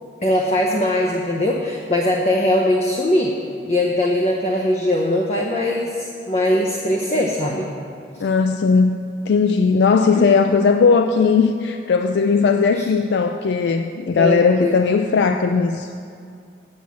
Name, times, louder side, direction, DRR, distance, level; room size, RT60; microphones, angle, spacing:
voice 1, 0.2-3.3 3.7-7.7 10.2-10.3 12.8-12.9 14.2-14.7, left 1 dB, 35° left, 0 dB, 0.6 m, -20 dB
voice 2, 8.2-9.0 9.3-15.9, left 5 dB, 70° left, 7 dB, 0.3 m, -17 dB
7.5 x 7.1 x 7.5 m, 2.4 s
head